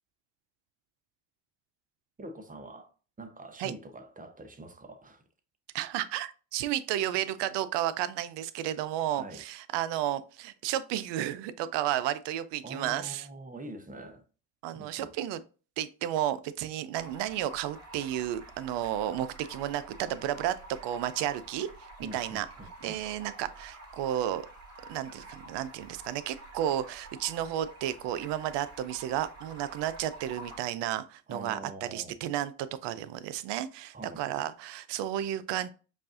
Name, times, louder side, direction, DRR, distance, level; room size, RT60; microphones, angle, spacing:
voice 1, 2.2-2.9 3.2-5.2 9.1-9.5 12.6-14.2 14.7-15.1 22.0-23.0 31.3-32.1 33.9-34.2, right 2 dB, 20° right, 0.7 m, -44 dB
voice 2, 5.7-13.3 14.6-15.4 15.8-21.7 22.1-22.5 22.8-24.4 24.9-35.7, right 12 dB, 70° right, 0.5 m, -32 dB
Stream, 16.9-30.6, right 2 dB, 35° right, 2.0 m, -49 dB
5.2 x 2.4 x 2.5 m
supercardioid pair, 70°, 44 cm